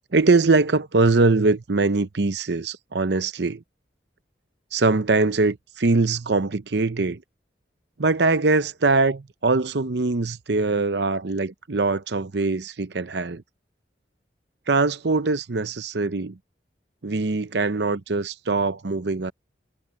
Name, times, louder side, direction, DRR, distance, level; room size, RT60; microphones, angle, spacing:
voice 1, 0.1-3.6 4.7-7.2 8.0-13.4 14.7-16.4 17.0-19.3, right 3 dB, 65° right, 0.8 m, -22 dB
head